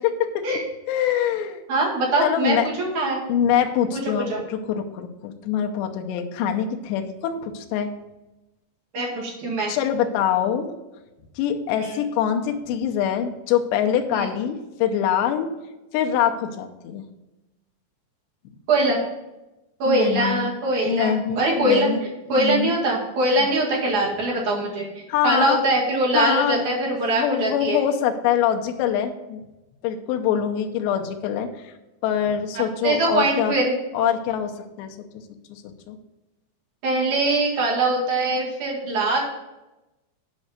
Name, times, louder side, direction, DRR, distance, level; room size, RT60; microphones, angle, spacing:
voice 1, 0.0-0.6 0.9-1.6 2.2-2.7 3.3-7.9 9.7-10.8 11.4-15.5 15.9-17.1 19.9-20.5 20.8-22.0 22.3-22.7 23.4-23.5 25.1-25.6 26.1-26.7 27.1-29.4 29.8-31.7 32.0-33.5 33.9-35.0 35.5-36.0, left 9 dB, 80° left, 4 dB, 2.9 m, -24 dB
voice 2, 1.7-3.2 3.9-4.0 4.3-4.4 8.9-9.7 11.8-12.0 14.1-14.3 18.7-19.0 19.8-21.9 22.3-27.8 32.5-33.7 36.8-39.2, right 2 dB, 50° right, -4 dB, 2.9 m, -22 dB
8.4 x 5.2 x 6.5 m, 1.0 s
omnidirectional pair, 4.9 m